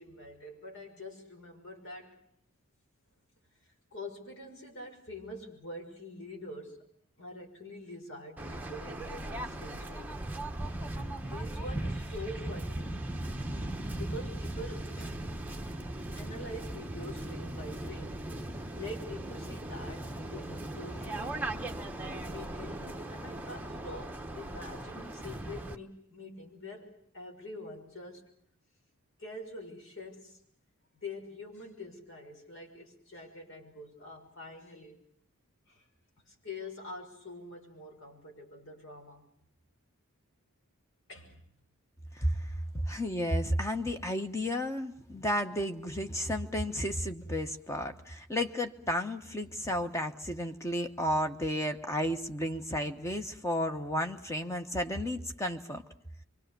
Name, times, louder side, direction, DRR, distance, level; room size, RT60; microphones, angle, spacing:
voice 1, 0.0-2.2 3.9-6.8 7.2-10.1 10.9-13.0 13.9-15.3 16.1-21.5 22.0-28.3 29.2-30.4 31.0-35.0 35.7-35.9 36.2-39.3 41.1-41.4 42.4-42.6, left 1 dB, 60° left, 1 dB, 6.4 m, -45 dB
Waves surf, 8.4-25.8, right 1 dB, 10° right, 1.0 m, -38 dB
voice 2, 42.9-55.8, equal, 15° left, 6 dB, 1.1 m, -32 dB
26.0 x 24.5 x 6.9 m, 0.68 s
head